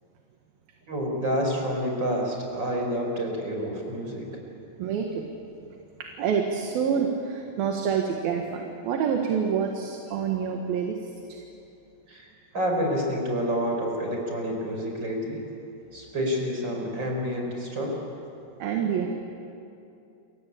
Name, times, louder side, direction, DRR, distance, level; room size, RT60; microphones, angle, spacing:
voice 1, 0.9-4.3 12.1-15.4 15.9-18.0, equal, 25° right, 1 dB, 5.6 m, -28 dB
voice 2, 4.8-5.3 6.0-11.0 11.3-11.4 18.6-19.1, right 7 dB, 65° right, 2 dB, 3.2 m, -27 dB
29.0 x 23.5 x 8.6 m, 2.7 s
omnidirectional pair, 4.9 m